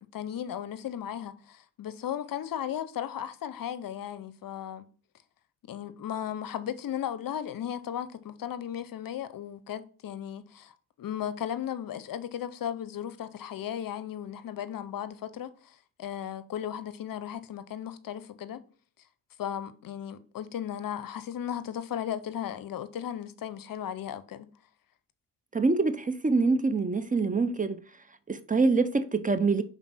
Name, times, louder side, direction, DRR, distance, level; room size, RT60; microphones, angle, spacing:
voice 1, 0.0-4.9 5.7-18.6 19.4-24.5, left 10 dB, 55° left, 0.7 m, -36 dB
voice 2, 25.5-27.8 28.3-29.6, right 3 dB, 20° right, 0.6 m, -25 dB
5.3 x 4.1 x 6.0 m
cardioid pair, 80°, 39 cm